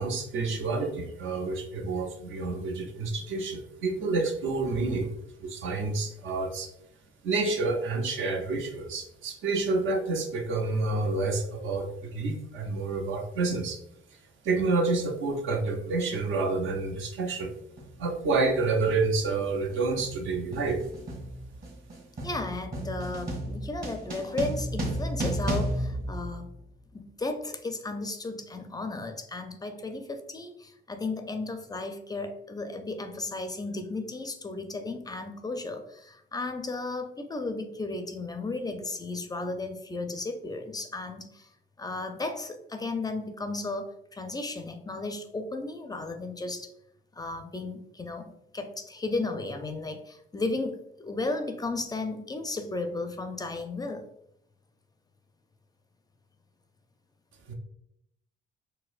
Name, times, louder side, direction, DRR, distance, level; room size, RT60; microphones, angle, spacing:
voice 1, 0.0-5.1 5.4-6.7 7.2-13.8 14.4-17.5 18.0-20.8 57.5-57.6, right 3 dB, 80° right, 3 dB, 0.6 m, -28 dB
sound 1, 16.7-16.9 17.8-18.0 18.3-26.9, right 1 dB, 45° right, 1.3 m, -34 dB
voice 2, 22.2-26.5 26.9-41.5 41.8-46.7 47.1-54.1, left 2 dB, 20° left, 7 dB, 0.4 m, -34 dB
4.3 x 2.0 x 2.4 m, 0.75 s
cardioid pair, 90°, 20 cm